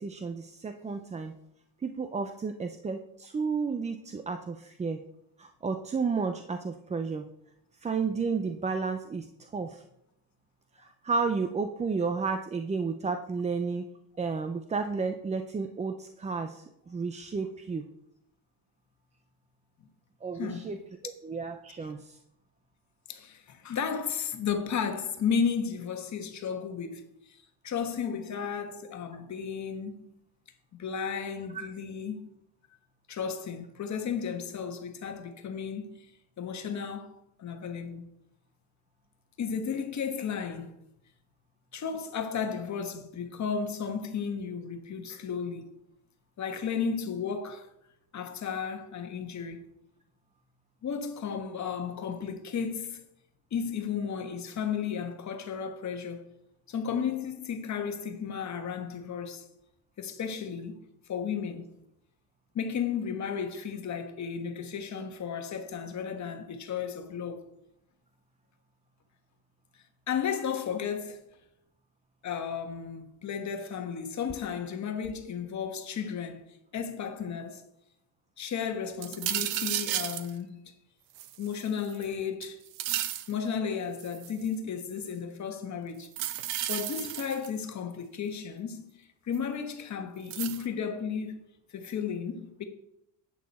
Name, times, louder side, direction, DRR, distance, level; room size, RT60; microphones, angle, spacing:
voice 1, 0.0-1.3 1.8-5.0 5.4-7.3 7.8-9.8 10.8-13.9 14.2-17.8 20.2-22.2, right 4 dB, 15° right, 0.4 m, -32 dB
voice 2, 20.3-20.8 23.1-30.1 30.8-32.2 33.1-35.9 36.4-38.1 39.4-40.7 41.7-45.7 46.4-47.7 48.1-49.7 50.8-53.0 53.5-56.3 56.7-59.5 60.0-60.8 61.1-61.7 62.5-67.5 70.1-71.3 72.2-76.4 76.7-77.6 78.4-80.6 81.4-82.6 83.3-86.1 86.7-91.4 91.7-92.6, left 6 dB, 40° left, 1.4 m, -34 dB
sound 1, 79.0-80.3 81.2-82.0 82.4-83.3 84.0-84.5 86.0-87.6 89.3-89.4 90.3-90.6, right 13 dB, 85° right, 1.0 m, -33 dB
11.0 x 8.6 x 4.2 m
cardioid pair, 150°, 44 cm